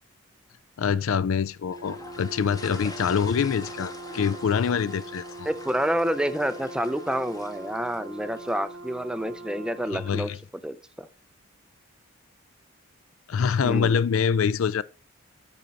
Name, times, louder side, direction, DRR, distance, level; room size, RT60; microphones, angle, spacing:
voice 1, 0.8-5.5 9.9-10.4 13.3-14.8, left 6 dB, 70° left, 0.4 m, -25 dB
sound 1, 1.7-9.0, left 2 dB, 15° left, 0.8 m, -45 dB
Brass instrument, 1.7-10.4, right 2 dB, 70° right, 0.9 m, -41 dB
voice 2, 5.5-10.3 10.6-11.1 13.6-13.9, equal, 5° right, 0.4 m, -28 dB
8.0 x 5.7 x 4.1 m
head